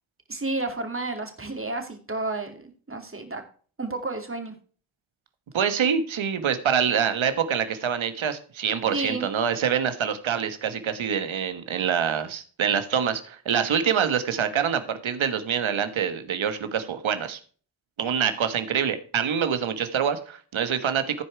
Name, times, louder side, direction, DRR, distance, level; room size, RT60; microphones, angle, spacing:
voice 1, 0.3-3.4 3.8-4.5 8.9-9.3, right 2 dB, 25° right, 5 dB, 2.4 m, -31 dB
voice 2, 5.5-17.4 18.0-21.2, right 7 dB, 75° right, 10 dB, 1.3 m, -25 dB
14.5 x 4.9 x 4.6 m, 0.42 s
cardioid pair, 45°, 48 cm